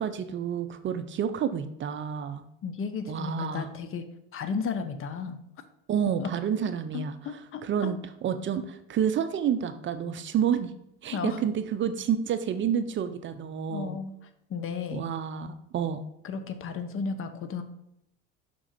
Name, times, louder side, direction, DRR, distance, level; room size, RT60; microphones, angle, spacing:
voice 1, 0.0-2.4 3.1-3.7 5.9-10.7 11.0-14.0 14.9-16.0, right 8 dB, 35° right, 10 dB, 0.5 m, -29 dB
voice 2, 2.6-4.0 4.3-5.4 6.2-6.3 6.9-7.9 11.1-11.4 13.7-14.1 14.5-15.1 16.2-17.6, left 5 dB, 40° left, 9 dB, 0.7 m, -34 dB
6.0 x 3.7 x 4.9 m, 0.80 s
supercardioid pair, 90°, 33 cm